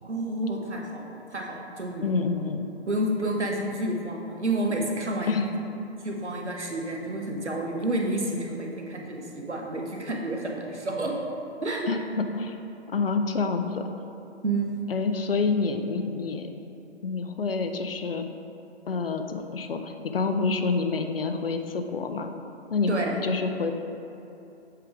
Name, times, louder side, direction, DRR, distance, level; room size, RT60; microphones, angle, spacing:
voice 1, 0.0-2.1 2.9-5.5 6.0-11.3 11.6-11.9 14.4-14.8 22.9-23.2, right 1 dB, 85° right, 0 dB, 1.1 m, -30 dB
voice 2, 2.0-2.7 5.3-5.5 11.9-12.6 12.9-13.9 14.9-16.5 17.0-18.3 18.9-22.3 22.7-22.9 23.2-23.7, left 4 dB, 55° left, 6 dB, 0.6 m, -27 dB
7.7 x 3.5 x 4.7 m, 2.8 s
figure-of-eight pair, 135°, 34 cm